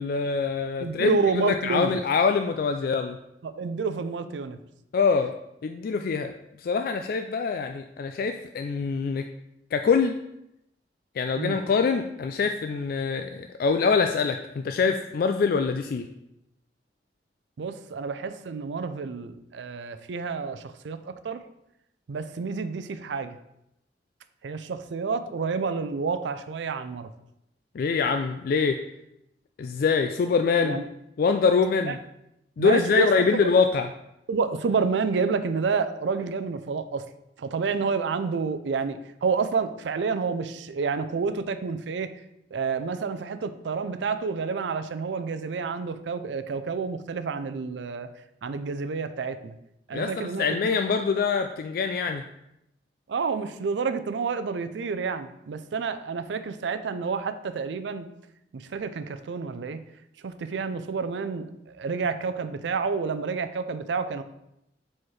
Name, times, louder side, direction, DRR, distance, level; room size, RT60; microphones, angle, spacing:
voice 1, 0.0-3.2 4.9-5.3 5.6-9.2 9.7-10.2 11.2-16.1 27.7-28.8 29.6-30.8 31.2-32.0 32.6-33.9 49.9-52.2, left 5 dB, 55° left, 6 dB, 0.3 m, -24 dB
voice 2, 0.8-2.0 3.4-4.6 11.4-11.6 17.6-21.4 22.1-23.4 24.4-27.1 30.6-30.8 31.9-32.0 32.6-33.5 34.3-37.0 37.4-42.1 42.5-48.1 48.4-49.5 49.9-50.8 53.1-58.1 58.5-59.8 60.2-64.2, right 5 dB, 90° right, 11 dB, 0.4 m, -29 dB
4.6 x 4.3 x 4.7 m, 0.83 s
head